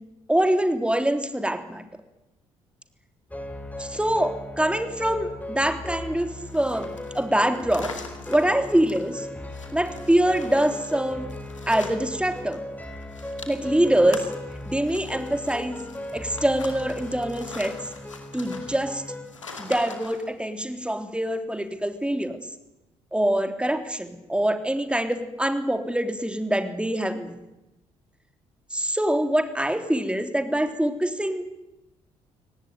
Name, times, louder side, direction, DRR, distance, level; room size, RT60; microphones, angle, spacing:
voice 1, 0.3-1.9 3.8-7.9 8.3-9.3 9.7-11.3 11.7-12.6 13.5-14.2 14.7-15.8 16.1-17.8 18.3-19.0 19.6-22.4 23.1-27.4 28.7-31.5, right 1 dB, 5° right, 7 dB, 3.5 m, -24 dB
sound 1, 3.3-19.3, left 1 dB, 10° left, 5.4 m, -37 dB
sound 2, 6.4-12.6 12.8-20.3, left 4 dB, 85° left, 2.3 m, -43 dB
24.5 x 18.5 x 9.4 m, 0.94 s
figure-of-eight pair, 45°, 16 cm